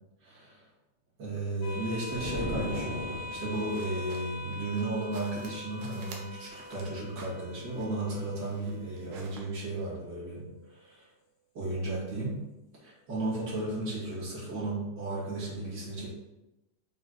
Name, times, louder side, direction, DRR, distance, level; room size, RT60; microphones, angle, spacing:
voice 1, 0.2-0.7 1.2-11.1 11.5-12.4 12.8-16.1, right 2 dB, 35° right, -8 dB, 2.5 m, -34 dB
sound 1, 1.6-10.6, left 2 dB, 85° left, 2.7 m, -44 dB
sound 2, 2.1-3.7, left 1 dB, 25° left, 1.4 m, -36 dB
sound 3, 3.5-9.4, right 4 dB, 70° right, 1.6 m, -52 dB
6.3 x 3.9 x 3.9 m, 0.99 s
omnidirectional pair, 3.8 m